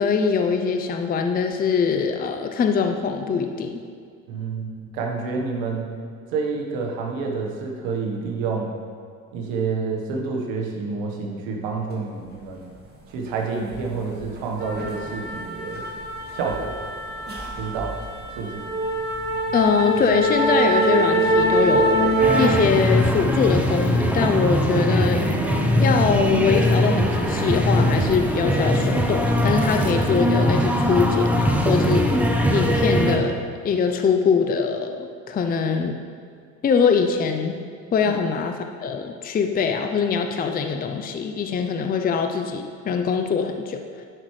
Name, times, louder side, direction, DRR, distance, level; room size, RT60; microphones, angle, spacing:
voice 1, 0.0-3.9 19.5-25.3 25.8-32.3 32.5-33.4 33.6-36.0 36.6-37.6 37.9-43.8, left 6 dB, 25° left, 5 dB, 0.5 m, -23 dB
voice 2, 4.3-5.9 6.3-8.7 9.3-12.7 13.1-15.9 16.3-16.7 17.6-18.0 18.4-18.6 38.0-38.1, right 4 dB, 80° right, 0 dB, 1.4 m, -28 dB
sound 1, 13.7-13.9 14.2-22.5, right 1 dB, 30° right, 1.6 m, -23 dB
sound 2, 22.2-33.2, equal, 5° right, 0.8 m, -21 dB
10.5 x 5.8 x 3.2 m, 2.2 s
supercardioid pair, 85°, 35 cm